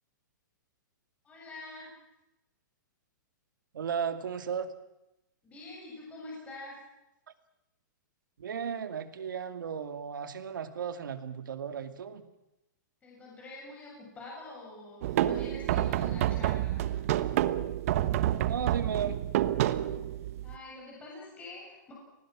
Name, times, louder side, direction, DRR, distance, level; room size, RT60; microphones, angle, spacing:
voice 1, 1.2-1.9 5.4-6.8 13.0-17.0 20.4-21.9, left 2 dB, 15° left, -4 dB, 7.7 m, -46 dB
voice 2, 3.7-4.7 8.4-12.2 18.5-19.2, right 7 dB, 85° right, 9 dB, 2.5 m, -35 dB
sound 1, 15.0-20.5, right 13 dB, 45° right, 1.2 m, -28 dB
28.5 x 20.0 x 6.3 m, 0.95 s
hypercardioid pair, 160°, 10 cm